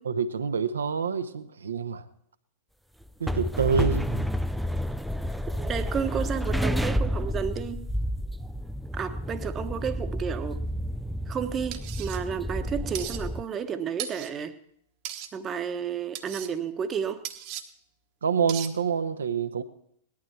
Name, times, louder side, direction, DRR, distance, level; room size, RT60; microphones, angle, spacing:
voice 1, 0.0-2.0 3.2-4.3 18.2-19.6, right 6 dB, 75° right, 10 dB, 0.9 m, -27 dB
sound 1, 3.0-13.4, equal, ahead, 0.5 m, -30 dB
voice 2, 5.6-7.8 8.9-10.6 11.3-14.6 15.3-17.2, right 7 dB, 25° right, 9 dB, 1.1 m, -32 dB
sound 2, 11.7-12.2 12.9-13.2 14.0-14.3 15.0-15.3 16.1-16.5 17.2-17.6 18.5-18.7, right 10 dB, 45° right, 1.2 m, -36 dB
18.5 x 11.5 x 4.6 m, 0.69 s
figure-of-eight pair, 95°, 0 cm